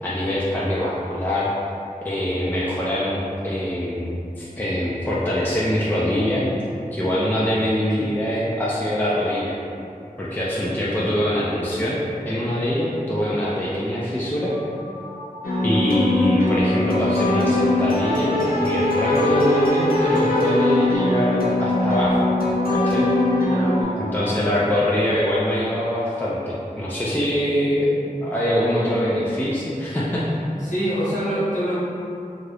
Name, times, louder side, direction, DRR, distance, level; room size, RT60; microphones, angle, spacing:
voice 1, 0.0-1.5 2.0-6.4 6.9-9.6 10.2-12.0 12.2-14.6 15.6-22.3 22.7-23.1 24.1-30.2, left 1 dB, 10° left, -8 dB, 0.4 m, -23 dB
sound 1, 14.5-25.2, left 1 dB, 30° right, 0.9 m, -38 dB
sound 2, 15.4-23.8, left 1 dB, 75° left, 0.5 m, -21 dB
voice 2, 23.5-24.4 30.6-31.8, equal, 55° left, -11 dB, 1.2 m, -27 dB
2.7 x 2.4 x 3.3 m, 2.6 s
wide cardioid pair, 45°, 15 cm